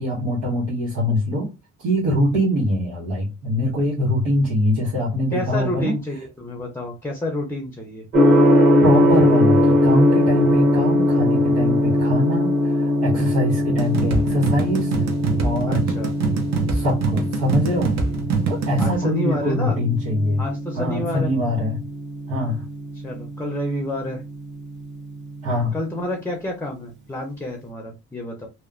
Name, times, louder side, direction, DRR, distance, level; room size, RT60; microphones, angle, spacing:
voice 1, 0.0-1.5 1.8-5.9 8.8-14.9 15.4-15.8 16.7-18.0 18.5-20.4 20.7-21.8 22.3-22.6 25.4-25.8, left 1 dB, 85° right, 1.2 m, -23 dB
voice 2, 5.3-8.1 15.6-16.1 18.8-19.8 20.4-21.3 22.9-24.2 25.7-28.5, left 1 dB, 10° left, 0.5 m, -29 dB
Gong, 8.1-26.0, equal, 35° right, 1.2 m, -21 dB
sound 1, 13.8-18.9, right 4 dB, 60° right, 0.7 m, -24 dB
2.9 x 2.1 x 2.4 m
cardioid pair, 90°, 30 cm